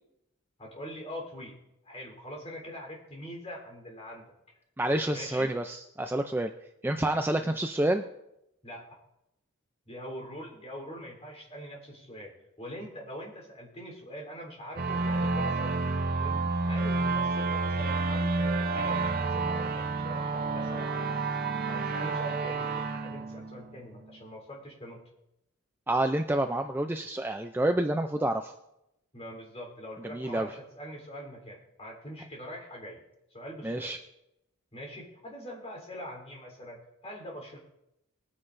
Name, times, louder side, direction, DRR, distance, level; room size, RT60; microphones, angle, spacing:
voice 1, 0.6-1.6 1.8-4.2 5.1-5.5 7.4-7.6 8.6-8.8 9.9-12.3 12.6-21.2 21.7-25.0 29.1-33.0 33.3-33.9 34.7-37.6, equal, 30° left, -1 dB, 3.6 m, -43 dB
voice 2, 4.8-6.5 6.8-8.0 25.9-28.5 30.1-30.5 33.6-34.0, right 1 dB, 10° right, 6 dB, 0.4 m, -28 dB
sound 1, 14.8-24.1, right 3 dB, 40° right, 0.7 m, -29 dB
21.0 x 9.7 x 2.6 m, 0.86 s
head